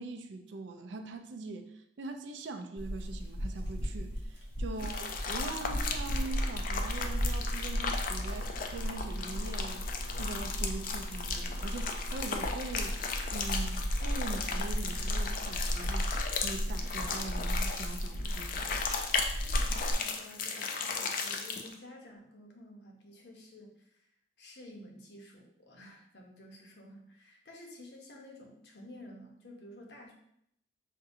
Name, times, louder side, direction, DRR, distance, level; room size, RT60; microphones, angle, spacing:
voice 1, 0.0-13.0 13.3-18.8, right 3 dB, 70° right, 7 dB, 0.4 m, -42 dB
sound 1, 2.8-19.9, equal, 85° left, 1.4 m, -35 dB
sound 2, 4.8-21.7, left 5 dB, 45° left, 0.4 m, -36 dB
sound 3, 5.4-15.5, equal, ahead, 0.7 m, -56 dB
voice 2, 19.6-24.1 24.4-30.1, left 1 dB, 60° left, 1 dB, 0.8 m, -52 dB
5.1 x 2.7 x 2.6 m, 0.74 s
head